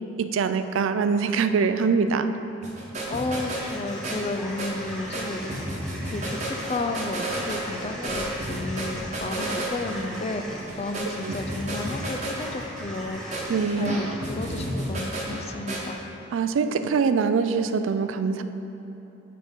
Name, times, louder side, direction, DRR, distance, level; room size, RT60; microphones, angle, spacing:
voice 1, 0.2-2.4 11.2-11.4 13.5-13.9 16.3-18.4, right 5 dB, 80° right, 10 dB, 0.4 m, -23 dB
sound 1, 2.6-15.8, right 1 dB, 35° right, 1.1 m, -32 dB
voice 2, 3.1-5.8 6.1-16.0, left 2 dB, 30° left, 6 dB, 0.4 m, -32 dB
sound 2, 3.4-15.7, equal, 5° left, 0.9 m, -40 dB
7.6 x 4.8 x 5.1 m, 3.0 s
head